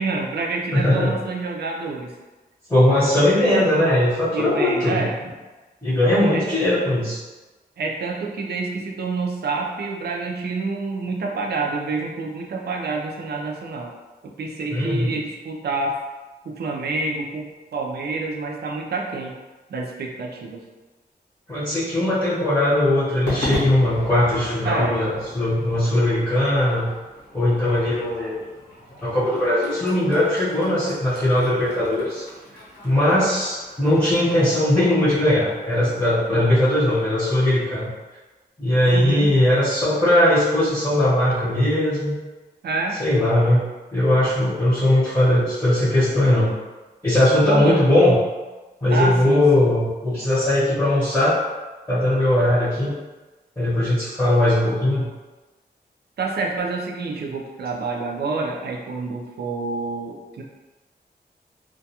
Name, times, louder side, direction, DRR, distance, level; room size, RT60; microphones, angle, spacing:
voice 1, 0.0-2.1 4.3-5.2 6.3-6.5 7.8-13.9 14.2-16.0 16.4-19.3 19.7-20.6 24.6-25.0 36.3-36.6 38.9-39.3 42.6-43.0 47.5-47.8 48.9-49.7 56.2-60.4, right 3 dB, 70° right, 0 dB, 0.4 m, -28 dB
voice 2, 0.7-1.1 2.7-5.0 5.8-7.2 14.7-15.2 21.5-26.9 27.3-28.4 29.0-32.2 32.8-37.9 38.6-42.2 43.0-43.6 43.9-46.5 47.0-48.2 48.8-51.4 51.9-52.9 53.6-55.0, left 1 dB, 10° left, -13 dB, 0.8 m, -19 dB
Crowd / Fireworks, 23.3-37.7, left 2 dB, 85° left, 0.9 m, -37 dB
2.3 x 2.2 x 2.7 m, 1.2 s
wide cardioid pair, 145°, 17 cm